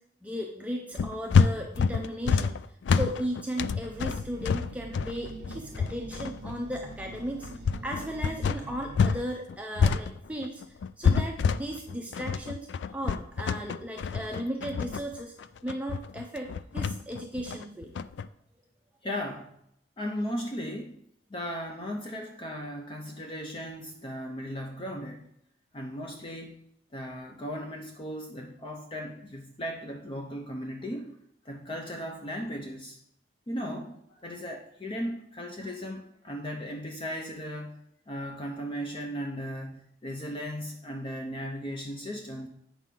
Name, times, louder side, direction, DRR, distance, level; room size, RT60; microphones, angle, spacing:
voice 1, 0.2-15.3 15.6-17.9, equal, 10° right, 1 dB, 0.6 m, -36 dB
sound 1, 0.9-9.2 9.5-18.2, left 5 dB, 70° left, 0.3 m, -27 dB
sound 2, 3.8-9.3, right 3 dB, 60° right, 0.6 m, -44 dB
voice 2, 19.0-19.6 20.0-21.0 21.3-25.3 25.7-26.6 26.9-31.2 31.4-33.0 33.5-37.8 38.1-42.5, equal, 30° left, 2 dB, 0.7 m, -36 dB
8.2 x 6.2 x 3.8 m, 0.74 s
head